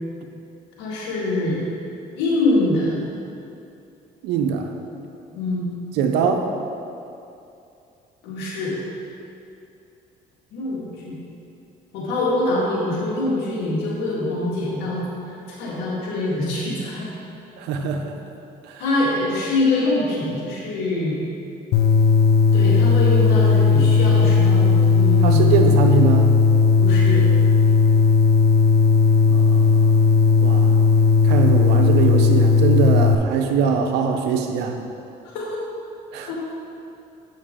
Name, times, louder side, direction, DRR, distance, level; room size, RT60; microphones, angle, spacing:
voice 1, 0.8-1.6 2.2-3.0 5.3-5.7 8.2-8.8 10.5-11.2 11.9-17.1 18.8-21.2 22.5-25.5 26.8-27.2 35.3-35.6 36.2-36.4, left 2 dB, 90° left, -5 dB, 1.8 m, -24 dB
voice 2, 4.2-4.7 5.9-6.5 17.6-18.2 18.6-18.8 25.2-26.4 29.3-30.0 30.4-30.8 31.2-34.8 36.1-36.3, right 6 dB, 85° right, 5 dB, 0.7 m, -22 dB
sound 1, 21.7-33.1, left 5 dB, 70° left, 0.5 m, -16 dB
8.5 x 5.6 x 3.6 m, 2.7 s
supercardioid pair, 80°, 17 cm